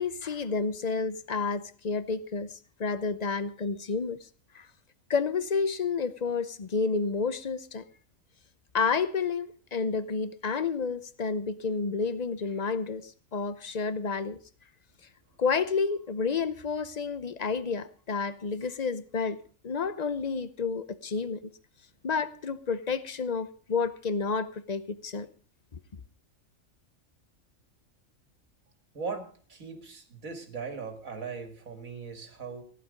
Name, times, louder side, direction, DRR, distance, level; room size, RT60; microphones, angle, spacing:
voice 1, 0.0-2.5 2.8-4.2 4.5-4.7 5.1-7.8 8.7-14.4 15.4-19.4 19.6-21.4 22.0-25.3 25.7-25.8, left 5 dB, 40° left, 0.7 m, -30 dB
voice 2, 28.9-32.6, right 5 dB, 85° right, 2.5 m, -39 dB
15.5 x 11.0 x 5.2 m
omnidirectional pair, 1.4 m